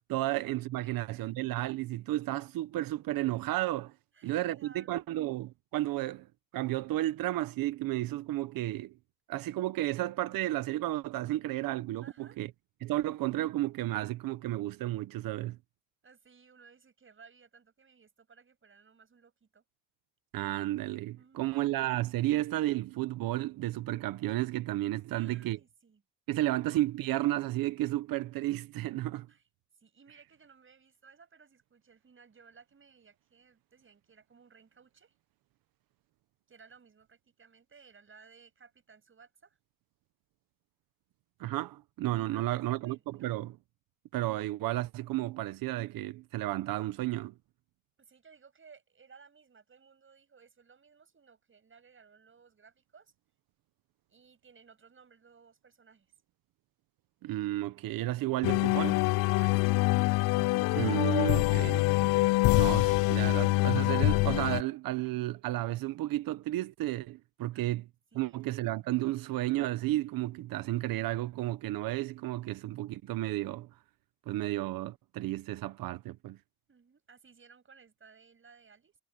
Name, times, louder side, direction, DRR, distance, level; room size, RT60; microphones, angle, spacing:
voice 1, 0.0-3.9 4.2-6.3 6.5-9.0 9.3-12.5 12.8-15.6 20.3-25.6 26.3-29.3 41.4-43.5 44.1-47.3 57.2-59.0 60.7-61.9 62.6-67.9 68.1-73.7 74.3-76.4, right 16 dB, 75° right, 1.2 m, -32 dB
voice 2, 4.1-5.1 12.0-12.4 16.0-19.6 21.1-21.5 25.1-26.0 29.3-29.5 29.7-35.1 36.5-39.6 42.3-43.3 48.0-53.1 54.1-56.1 59.2-60.3 60.7-61.1 67.5-67.8 68.1-68.5 76.7-79.0, right 5 dB, 35° right, 7.5 m, -59 dB
sound 1, 58.4-64.6, left 23 dB, 85° left, 0.5 m, -25 dB
cardioid pair, 85°, 34 cm